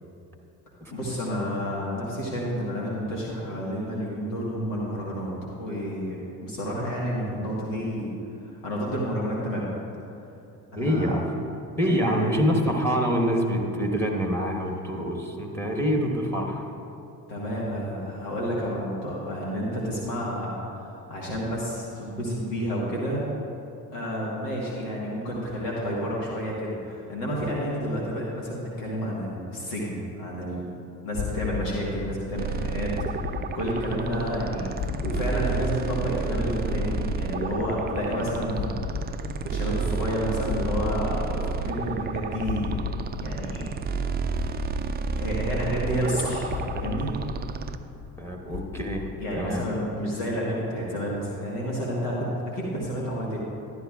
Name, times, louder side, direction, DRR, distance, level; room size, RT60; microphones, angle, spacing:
voice 1, 0.9-5.3 5.6-8.1 8.6-9.7 10.7-11.1 11.8-12.2 17.3-23.2 23.9-30.7 31.0-32.9 33.2-42.7 43.2-43.7 45.2-47.1 49.2-53.4, equal, 75° left, -5 dB, 1.7 m, -30 dB
voice 2, 10.7-11.3 11.8-16.7 48.2-49.6, equal, 5° left, 1 dB, 1.4 m, -26 dB
sound 1, 31.1-50.0, left 8 dB, 45° left, 0.6 m, -37 dB
sound 2, 32.4-47.8, right 5 dB, 20° right, 0.4 m, -31 dB
12.5 x 10.5 x 2.4 m, 2.7 s
hypercardioid pair, 55°, 48 cm